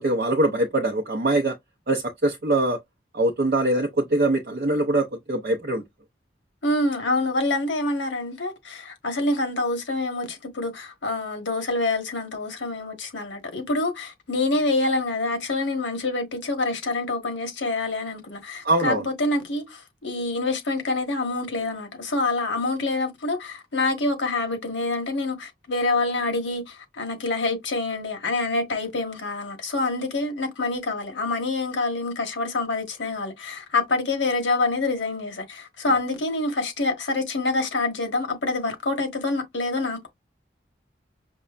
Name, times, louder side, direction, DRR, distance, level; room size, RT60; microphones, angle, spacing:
voice 1, 0.0-1.6 1.9-2.8 3.1-5.8 18.6-19.0 35.9-36.0, right 2 dB, 55° right, 0.6 m, -23 dB
voice 2, 6.6-40.1, left 2 dB, 90° left, 1.3 m, -26 dB
5.3 x 2.1 x 2.4 m
head